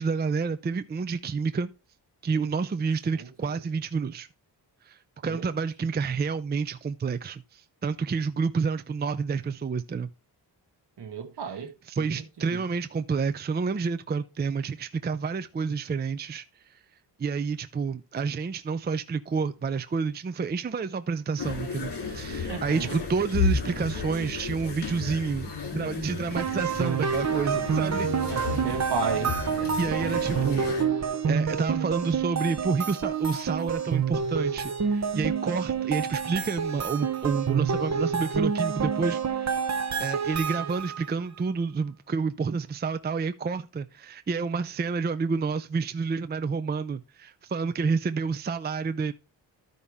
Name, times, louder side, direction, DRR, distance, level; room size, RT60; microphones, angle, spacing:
voice 1, 0.0-1.7 2.2-4.3 4.8-10.1 11.9-16.4 17.2-28.1 29.8-30.7 31.0-39.5 40.0-49.1, right 5 dB, 25° right, 0.4 m, -29 dB
voice 2, 11.0-12.0 12.5-12.6 22.5-22.9 28.3-29.4, right 5 dB, 65° right, 1.7 m, -33 dB
sound 1, 21.4-30.8, left 4 dB, 65° left, 3.1 m, -33 dB
sound 2, 26.4-41.1, right 6 dB, 40° right, 0.9 m, -28 dB
13.0 x 5.4 x 3.6 m
wide cardioid pair, 120°, 43 cm